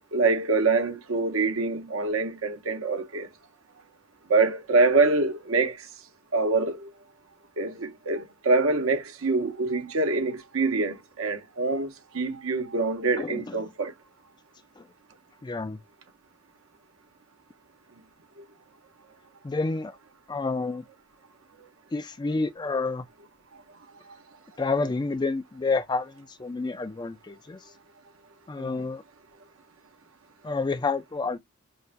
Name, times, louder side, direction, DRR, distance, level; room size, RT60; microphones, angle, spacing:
voice 1, 0.1-3.3 4.3-5.8 6.3-6.9 7.6-13.9 28.6-28.8, right 3 dB, 75° right, 0.9 m, -25 dB
voice 2, 13.2-13.7 14.8-14.9 15.4-15.8 19.4-20.0 20.3-20.8 21.9-23.0 24.6-27.6 28.5-29.0 30.4-31.4, left 3 dB, 20° left, 0.3 m, -29 dB
5.4 x 2.2 x 2.4 m
head